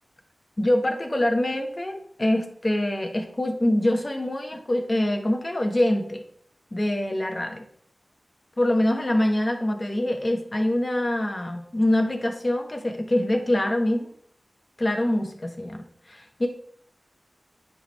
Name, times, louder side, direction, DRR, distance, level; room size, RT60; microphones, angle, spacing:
voice 1, 0.6-6.2 6.7-7.6 8.6-14.1 14.8-16.5, left 1 dB, 35° left, 4 dB, 1.2 m, -24 dB
9.8 x 3.6 x 4.2 m, 0.66 s
wide cardioid pair, 60°, 0 cm